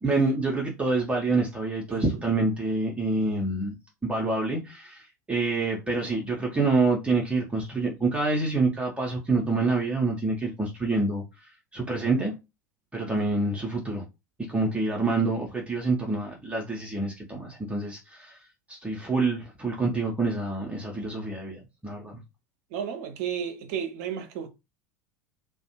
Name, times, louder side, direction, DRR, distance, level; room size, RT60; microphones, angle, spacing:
voice 1, 0.0-3.7 4.0-12.3 12.9-14.0 14.5-18.4 18.7-22.2, right 3 dB, 10° right, 0.6 m, -27 dB
voice 2, 22.7-24.5, right 8 dB, 55° right, 0.6 m, -32 dB
2.4 x 2.1 x 2.9 m
figure-of-eight pair, 75°, 10 cm